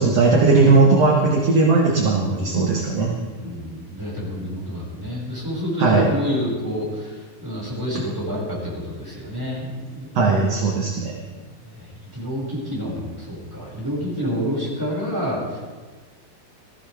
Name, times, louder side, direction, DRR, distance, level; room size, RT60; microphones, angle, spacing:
voice 1, 0.0-3.1 5.8-6.1 10.2-11.1, right 3 dB, 55° right, -1 dB, 2.1 m, -17 dB
voice 2, 2.7-3.0 3.4-10.1 11.3-15.6, equal, 5° right, -6 dB, 5.5 m, -28 dB
19.5 x 14.5 x 3.5 m, 1.4 s
omnidirectional pair, 4.2 m